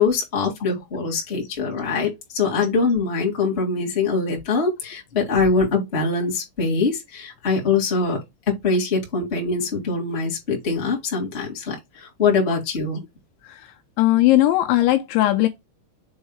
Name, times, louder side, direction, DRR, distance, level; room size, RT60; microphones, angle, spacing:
voice 1, 0.0-8.2 8.5-13.0, left 4 dB, 20° left, 1.9 m, -23 dB
voice 2, 14.0-15.5, left 15 dB, 80° left, 3.0 m, -18 dB
7.2 x 4.7 x 3.3 m
omnidirectional pair, 5.6 m